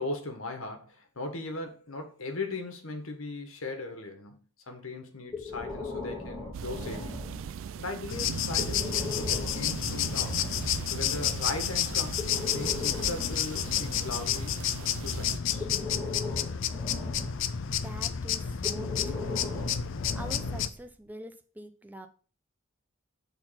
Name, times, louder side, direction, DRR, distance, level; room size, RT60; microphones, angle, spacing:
voice 1, 0.0-7.2 7.8-10.3 10.9-14.5 15.0-15.7, left 2 dB, 80° left, 5 dB, 1.6 m, -38 dB
Breathing, 5.3-7.7 8.5-10.8 11.9-14.8 15.4-17.6 18.6-20.9, left 2 dB, 10° left, 2.9 m, -39 dB
sound 1, 6.5-15.4, right 7 dB, 65° right, 0.3 m, -40 dB
sound 2, 8.1-20.7, left 9 dB, 65° left, 0.5 m, -31 dB
voice 2, 17.7-19.7 20.1-22.1, right 1 dB, 10° right, 6 dB, 0.6 m, -45 dB
6.6 x 4.0 x 5.7 m, 0.39 s
head